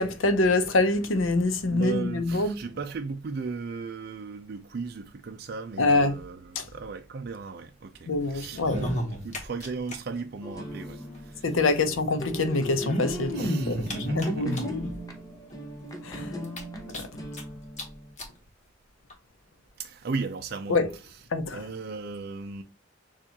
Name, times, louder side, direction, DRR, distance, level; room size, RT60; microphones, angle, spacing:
voice 1, 0.0-2.6 5.8-6.2 6.5-6.7 8.1-8.8 11.4-13.9 14.1-14.7 16.0-16.3 16.9-17.1 20.7-20.9 21.3-21.6, left 2 dB, 85° left, 0.7 m, -25 dB
voice 2, 1.7-11.4 13.3-14.6 19.8-20.8 21.5-22.6, right 4 dB, 50° right, 0.4 m, -36 dB
sound 1, 8.5-9.9 10.2-10.3 10.5-10.6 11.7-11.8 12.6-14.9 15.5-15.6 15.9-16.0 16.4-17.4 17.8-17.9 18.2-18.3 19.1-19.2, equal, 35° left, 1.1 m, -31 dB
sound 2, 10.4-18.1, equal, 20° left, 0.7 m, -39 dB
6.8 x 2.4 x 2.8 m
head